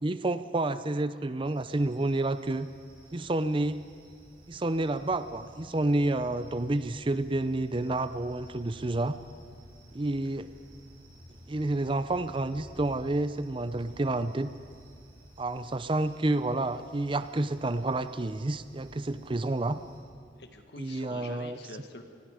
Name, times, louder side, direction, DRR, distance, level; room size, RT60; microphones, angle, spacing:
voice 1, 0.0-2.7 3.1-3.8 4.5-9.2 9.9-10.5 11.5-14.5 15.4-19.8 20.8-21.6, right 2 dB, 30° right, 12 dB, 0.5 m, -29 dB
sound 1, 1.4-20.0, equal, 55° right, 6.2 m, -53 dB
voice 2, 20.4-22.0, left 2 dB, 65° left, 6 dB, 1.6 m, -46 dB
27.0 x 19.5 x 5.0 m, 2.2 s
head